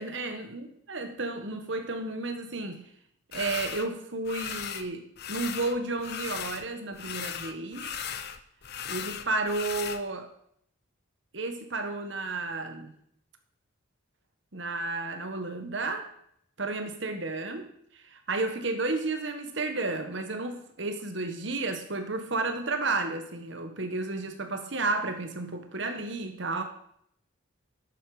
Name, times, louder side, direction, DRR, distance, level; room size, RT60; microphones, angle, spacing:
voice 1, 0.0-2.9 3.3-7.9 8.8-10.3 11.3-12.9 14.5-16.1 16.6-17.7 17.9-26.6, right 3 dB, 65° right, 6 dB, 1.6 m, -32 dB
sound 1, 3.3-3.9 4.2-4.9 5.2-6.7 6.9-10.0, left 8 dB, 50° left, 0.7 m, -37 dB
11.0 x 8.7 x 5.1 m, 0.69 s
head